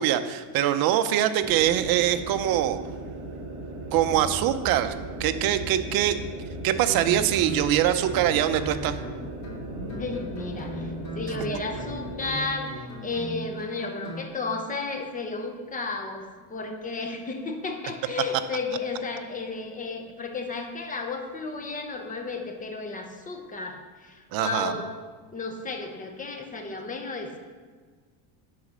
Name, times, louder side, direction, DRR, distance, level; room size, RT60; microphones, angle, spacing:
voice 1, 0.0-2.8 3.9-4.9 5.2-6.2 6.6-9.0 24.3-24.7, right 11 dB, 50° right, 9 dB, 0.7 m, -23 dB
sound 1, 1.4-12.5, right 2 dB, 30° right, 1.7 m, -38 dB
sound 2, 3.8-9.0, equal, 10° right, 0.7 m, -41 dB
Guitar, 6.9-14.3, equal, 40° left, 2.6 m, -38 dB
voice 2, 9.8-24.9 25.3-27.4, left 3 dB, 20° left, 4 dB, 1.0 m, -33 dB
9.5 x 4.2 x 6.1 m, 1.5 s
cardioid pair, 135°, 45 cm